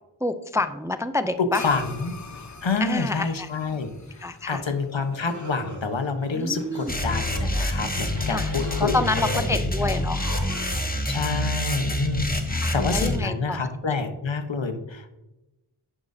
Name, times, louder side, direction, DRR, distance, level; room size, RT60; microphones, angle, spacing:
voice 1, 0.2-1.7 2.8-3.5 4.2-4.6 6.3-6.9 8.3-8.5 8.9-10.2 12.6-13.7, left 2 dB, 5° right, 10 dB, 0.4 m, -28 dB
voice 2, 1.4-9.3 9.8-10.0 10.8-15.1, left 4 dB, 65° left, 7 dB, 1.1 m, -28 dB
sound 1, 1.5-6.2, left 4 dB, 35° left, 0.9 m, -43 dB
sound 2, 5.1-12.2, right 2 dB, 40° right, 2.6 m, -40 dB
sound 3, 6.9-13.2, left 1 dB, 20° left, 1.2 m, -27 dB
10.5 x 8.8 x 2.7 m, 0.98 s
wide cardioid pair, 60°, 48 cm